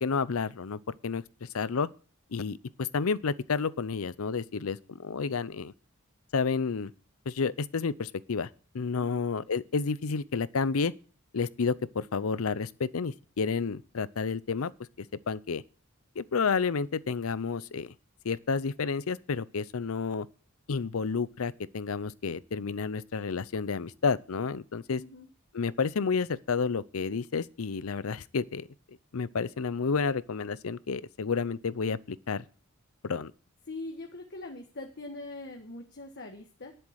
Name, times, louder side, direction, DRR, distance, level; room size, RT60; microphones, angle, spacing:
voice 1, 0.0-1.9 2.3-5.7 6.3-6.9 7.3-8.5 8.7-10.9 11.3-14.7 15.0-15.6 16.2-17.9 18.2-20.3 20.7-25.0 25.5-32.5 33.0-33.3, left 5 dB, 85° left, 0.6 m, -30 dB
voice 2, 24.9-25.3 33.7-36.7, left 2 dB, 55° left, 1.4 m, -42 dB
10.5 x 7.8 x 6.4 m
head